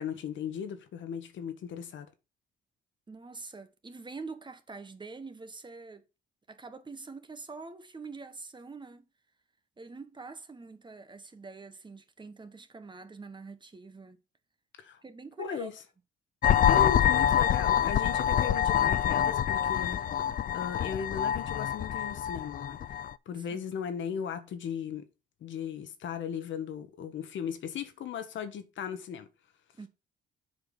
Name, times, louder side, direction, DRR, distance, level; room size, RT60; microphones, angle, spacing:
voice 1, 0.0-2.1 14.8-15.0 15.4-15.7 16.6-23.0 23.3-25.1 25.4-29.3, left 7 dB, 70° left, 1.4 m, -37 dB
voice 2, 3.1-6.0 6.5-9.1 9.8-14.2 15.0-15.7 23.4-23.6 29.8-29.9, right 4 dB, 25° right, 1.3 m, -45 dB
sound 1, 16.4-23.1, left 10 dB, 45° left, 0.4 m, -26 dB
7.6 x 4.7 x 5.4 m
cardioid pair, 90°, 20 cm